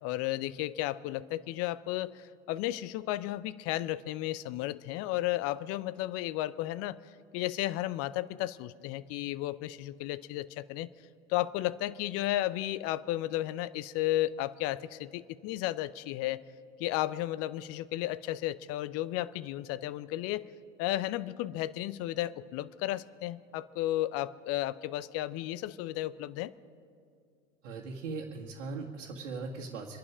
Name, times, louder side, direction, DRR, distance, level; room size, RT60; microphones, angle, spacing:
voice 1, 0.0-7.0 7.3-10.9 11.3-16.4 16.8-20.5 20.8-26.5, left 15 dB, 40° left, 17 dB, 0.6 m, -33 dB
voice 2, 27.6-30.0, right 4 dB, 65° right, -4 dB, 1.8 m, -39 dB
26.0 x 11.0 x 5.0 m, 2.3 s
figure-of-eight pair, 85°, 38 cm